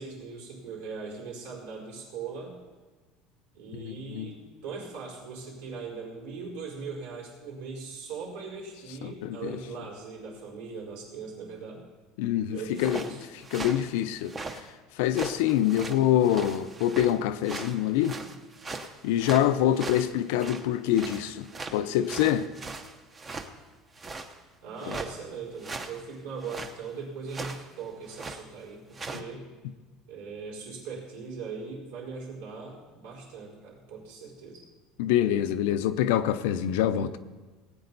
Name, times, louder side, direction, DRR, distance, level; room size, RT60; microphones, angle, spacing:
voice 1, 0.0-2.6 3.5-11.8 12.5-13.2 24.6-29.5 30.1-34.6, right 5 dB, 90° right, 4.6 m, -40 dB
voice 2, 3.7-4.3 9.0-9.6 12.2-13.0 13.5-14.3 15.0-18.2 19.0-22.5 24.9-25.0 35.0-37.2, left 11 dB, 80° left, 0.7 m, -25 dB
sound 1, 12.6-14.7 15.0-17.2 17.4-20.7 20.9-23.5 24.0-24.4 24.8-25.1 25.6-26.0 26.4-26.7 27.3-27.7 28.1-28.4 28.9-29.2, right 3 dB, 20° right, 0.7 m, -39 dB
19.0 x 8.8 x 4.1 m
cardioid pair, 170°, 0 cm